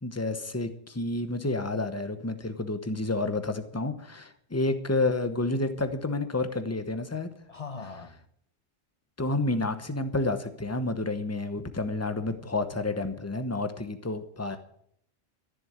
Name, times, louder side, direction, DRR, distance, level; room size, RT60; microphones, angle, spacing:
voice 1, 0.0-7.3 9.2-14.6, left 2 dB, 15° left, 1.0 m, -30 dB
voice 2, 7.5-8.2 14.4-14.6, left 4 dB, 35° left, 0.8 m, -41 dB
13.5 x 7.5 x 8.6 m
omnidirectional pair, 1.2 m